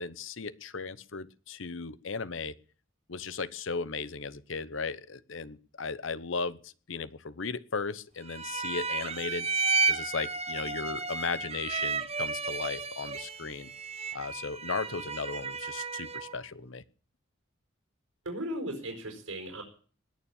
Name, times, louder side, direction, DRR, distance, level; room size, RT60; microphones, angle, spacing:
voice 1, 0.0-2.5 3.1-9.5 9.9-13.7 14.1-16.8, left 4 dB, 70° left, 16 dB, 0.9 m, -36 dB
sound 1, 8.3-16.4, right 4 dB, 30° right, 1.1 m, -33 dB
voice 2, 18.2-19.6, right 1 dB, 85° right, 1 dB, 4.9 m, -36 dB
20.0 x 7.2 x 8.6 m, 0.42 s
head